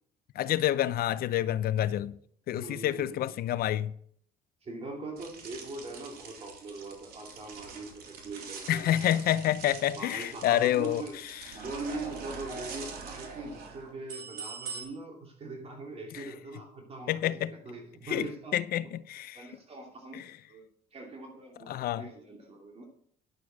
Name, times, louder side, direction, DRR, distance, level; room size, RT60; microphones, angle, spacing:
voice 1, 0.3-2.2 2.5-3.9 8.7-11.0 11.3-11.5 16.1-16.2 17.1-17.6 18.0-19.4 20.1-20.2 21.7-22.1, left 12 dB, 65° left, 0.6 m, -28 dB
voice 2, 2.5-3.3 4.6-9.2 9.9-11.2 11.5-17.3 17.6-18.5 19.3-20.2 20.5-22.9, right 2 dB, 35° right, 2.8 m, -42 dB
sound 1, 5.2-14.8, right 5 dB, 65° right, 3.1 m, -44 dB
11.0 x 6.8 x 6.3 m
cardioid pair, 110°, 17 cm